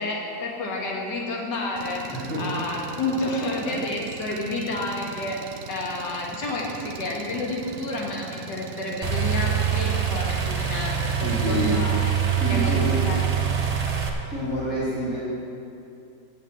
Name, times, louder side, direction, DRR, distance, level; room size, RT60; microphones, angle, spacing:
voice 1, 0.0-2.0 2.4-12.1 12.5-13.3, left 2 dB, 70° left, -2 dB, 2.0 m, -30 dB
Engine, 1.8-11.8, right 7 dB, 80° right, 1.2 m, -41 dB
voice 2, 2.1-2.4 11.2-11.8 12.4-12.9 14.3-15.2, right 1 dB, 45° left, -14 dB, 3.4 m, -27 dB
sound 1, 9.0-14.1, right 8 dB, 55° right, 0.4 m, -24 dB
7.9 x 7.6 x 7.7 m, 2.5 s
omnidirectional pair, 1.9 m